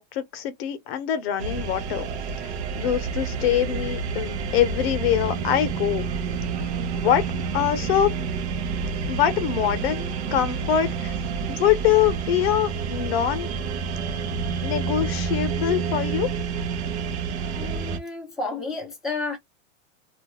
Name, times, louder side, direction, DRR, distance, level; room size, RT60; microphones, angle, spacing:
voice 1, 0.0-2.1 2.4-2.5 2.8-6.1 6.9-7.2 7.5-8.1 9.1-11.1 11.5-13.5 14.6-16.3, left 10 dB, 50° left, 0.8 m, -24 dB
sound 1, 1.4-18.0, right 5 dB, 60° right, 0.7 m, -29 dB
voice 2, 17.6-19.4, left 3 dB, ahead, 0.6 m, -31 dB
2.5 x 2.3 x 2.9 m
supercardioid pair, 155°, 38 cm